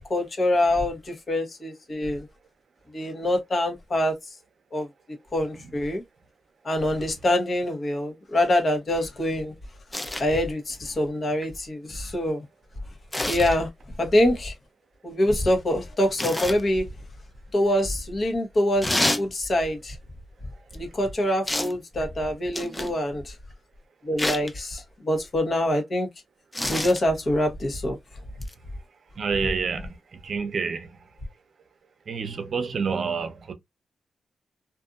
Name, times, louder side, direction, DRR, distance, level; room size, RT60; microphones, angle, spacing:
voice 1, 0.1-2.2 2.9-4.1 4.7-4.9 5.3-6.0 6.6-9.5 10.2-12.4 13.2-13.7 14.0-14.5 15.0-16.9 17.5-20.0 20.7-23.3 24.0-26.1 26.7-28.0, left 1 dB, 50° left, 1.0 m, -25 dB
sound 1, 9.9-10.3 13.1-13.6 16.2-16.6 18.8-19.3 21.5-21.8 22.5-23.0 24.2-24.5 26.5-27.0 28.4-28.5, left 1 dB, 15° left, 0.4 m, -27 dB
voice 2, 29.2-29.9 30.2-30.9 32.1-33.5, right 5 dB, 60° right, 0.6 m, -28 dB
2.6 x 2.6 x 2.4 m
cardioid pair, 70°, 0 cm